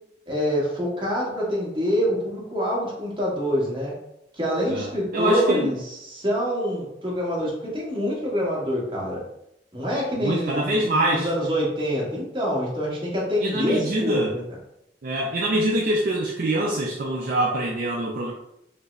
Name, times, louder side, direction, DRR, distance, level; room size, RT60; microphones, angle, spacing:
voice 1, 0.3-3.9 4.3-9.2 9.7-14.4, equal, 30° right, -5 dB, 1.1 m, -26 dB
voice 2, 4.7-5.7 10.1-11.3 13.4-14.4 15.0-18.3, right 1 dB, 50° right, -2 dB, 0.4 m, -24 dB
5.1 x 2.0 x 2.4 m, 0.80 s
head